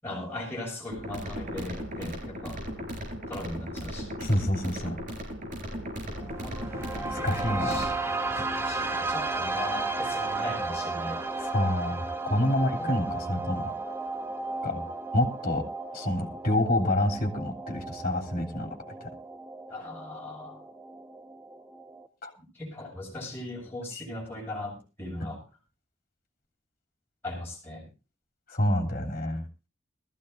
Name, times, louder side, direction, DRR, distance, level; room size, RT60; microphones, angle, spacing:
voice 1, 0.0-2.6 3.3-4.1 6.4-6.6 6.9-7.9 8.3-11.2 12.4-12.5 12.8-13.5 14.6-14.9 19.7-20.6 22.4-25.4 27.2-27.9, left 1 dB, 10° left, -5 dB, 7.1 m, -39 dB
sound 1, 0.9-7.9, equal, 45° right, 4.7 m, -37 dB
voice 2, 4.2-5.0 7.1-7.8 11.5-13.7 14.6-14.8 15.1-15.6 15.9-19.1 22.2-22.3 25.2-25.3 28.5-29.5, left 1 dB, 45° left, 0 dB, 3.2 m, -28 dB
sound 2, 6.1-22.1, right 3 dB, 15° right, 1.1 m, -34 dB
21.0 x 14.5 x 2.6 m, 0.30 s
head